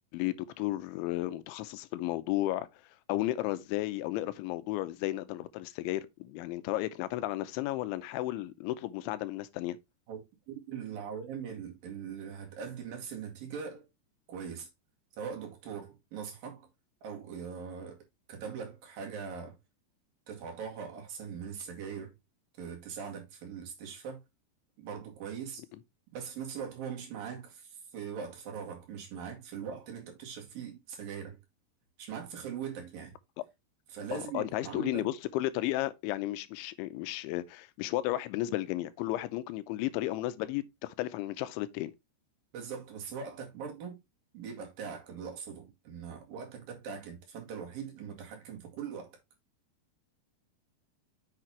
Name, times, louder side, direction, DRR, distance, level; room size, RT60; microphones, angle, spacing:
voice 1, 0.1-2.7 3.1-9.8 34.1-41.9, left 16 dB, 90° left, 3.1 m, -33 dB
voice 2, 10.1-13.9 14.3-14.7 15.2-16.7 17.0-19.6 20.3-22.1 22.6-24.2 24.8-25.6 26.1-31.4 32.0-33.2 33.9-35.1 42.5-44.0 44.3-49.1, right 7 dB, 55° right, 3.5 m, -41 dB
8.0 x 6.6 x 2.9 m
omnidirectional pair, 5.3 m